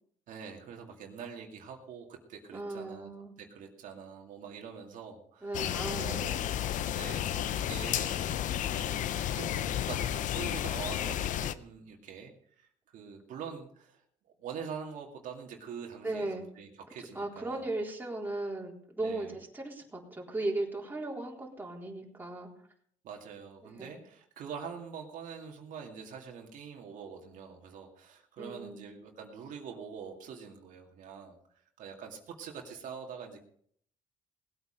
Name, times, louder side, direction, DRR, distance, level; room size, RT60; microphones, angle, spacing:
voice 1, 0.3-3.1 3.4-5.6 6.0-6.6 6.9-17.7 19.0-19.3 23.0-33.4, right 6 dB, 70° right, 1 dB, 2.3 m, -45 dB
voice 2, 2.5-3.3 5.4-6.2 16.0-16.4 17.1-22.5 23.8-23.9 28.4-28.9, right 2 dB, 15° right, -1 dB, 3.8 m, -37 dB
sound 1, 5.5-11.5, left 11 dB, 65° left, 0.7 m, -32 dB
19.0 x 8.8 x 5.2 m, 0.62 s
cardioid pair, 95°, 14 cm